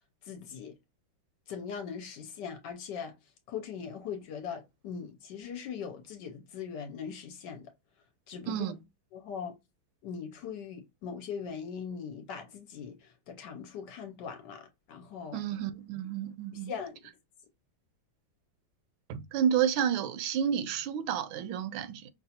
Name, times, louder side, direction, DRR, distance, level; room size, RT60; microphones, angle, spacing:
voice 1, 0.2-0.8 1.5-3.2 3.5-7.7 8.3-8.7 9.1-9.6 10.0-15.4 16.5-17.0, left 7 dB, 70° left, 1.2 m, -40 dB
voice 2, 8.5-8.8 15.3-16.7 19.1-22.1, right 9 dB, 80° right, 1.3 m, -30 dB
5.3 x 2.3 x 2.7 m
omnidirectional pair, 2.2 m